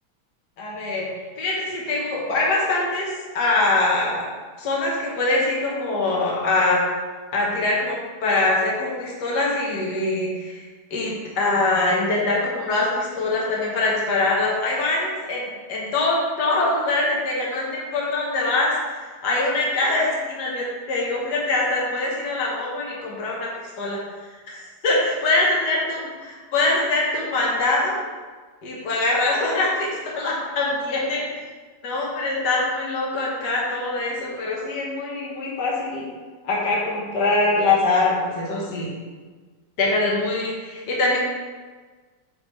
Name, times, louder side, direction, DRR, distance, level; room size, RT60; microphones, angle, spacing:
voice 1, 0.6-1.1 1.4-3.1 3.3-4.2 4.6-6.8 7.3-10.6 10.9-18.7 19.2-24.0 24.5-26.0 26.5-28.0 28.6-29.9 30.1-31.2 31.8-36.0 36.4-38.9 39.8-41.2, left 2 dB, 75° left, -3 dB, 1.7 m, -23 dB
8.7 x 3.4 x 3.1 m, 1.4 s
omnidirectional pair, 1.8 m